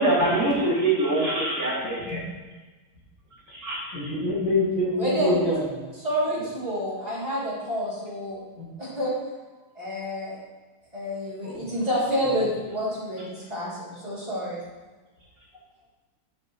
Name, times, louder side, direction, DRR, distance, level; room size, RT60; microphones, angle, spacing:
voice 1, 0.0-2.2 3.5-3.8, right 2 dB, 40° right, -8 dB, 3.3 m, -24 dB
voice 2, 1.8-2.2 3.9-5.8 8.6-8.7 11.4-11.7 12.2-12.3, left 1 dB, 70° left, -6 dB, 3.5 m, -26 dB
voice 3, 5.0-5.6 6.0-8.4 8.8-9.1 9.7-10.4 10.9-14.6, equal, 20° right, -9 dB, 3.1 m, -28 dB
12.0 x 7.5 x 3.2 m, 1.2 s
omnidirectional pair, 2.4 m